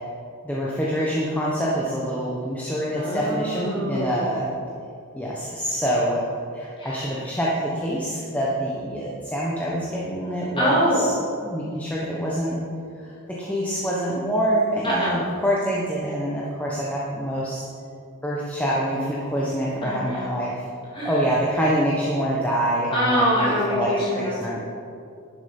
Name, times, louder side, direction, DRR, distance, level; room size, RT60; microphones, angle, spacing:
voice 1, 0.4-4.5 5.1-6.2 6.5-11.0 11.4-12.6 13.4-17.6 18.2-20.6 21.0-23.9 24.4-24.6, equal, 5° left, -5 dB, 1.1 m, -25 dB
voice 2, 2.9-4.3 6.8-7.3 10.6-11.1 14.8-15.2 19.8-20.3 20.9-21.2 22.9-24.3, equal, 25° left, -6 dB, 2.9 m, -24 dB
11.0 x 7.0 x 5.4 m, 2.5 s
head